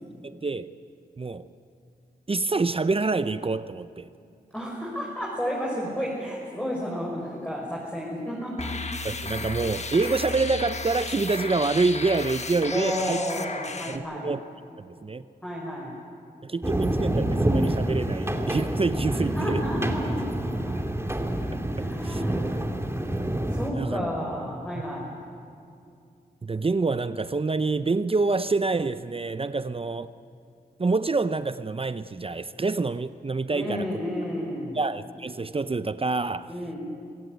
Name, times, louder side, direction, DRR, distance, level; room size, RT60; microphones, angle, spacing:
voice 1, 0.2-0.7 1.2-1.5 2.3-4.1 9.0-13.2 13.9-14.4 14.8-15.2 16.4-19.6 22.0-22.2 23.7-24.1 26.4-30.1 30.8-33.9 34.7-36.5, right 3 dB, 35° right, 13 dB, 0.7 m, -27 dB
voice 2, 4.5-8.7 12.7-14.3 15.4-15.9 19.1-20.7 21.7-22.7 23.5-25.2 33.5-34.8 36.5-36.8, equal, 5° left, -4 dB, 5.6 m, -31 dB
sound 1, 8.6-14.0, left 3 dB, 45° left, 1.6 m, -34 dB
sound 2, 16.6-23.7, right 1 dB, 15° right, 2.7 m, -27 dB
26.0 x 15.5 x 9.4 m, 2.4 s
cardioid pair, 50°, 17 cm